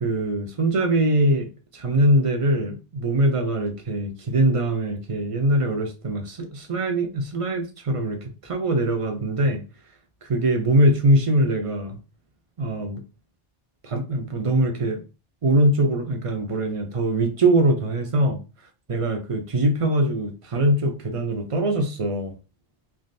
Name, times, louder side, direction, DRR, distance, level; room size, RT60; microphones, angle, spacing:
voice 1, 0.0-9.6 10.2-12.0 12.6-13.0 13.8-15.0 15.4-18.4 18.9-22.3, right 1 dB, 40° right, 0.6 m, -22 dB
3.3 x 2.4 x 2.5 m
omnidirectional pair, 1.0 m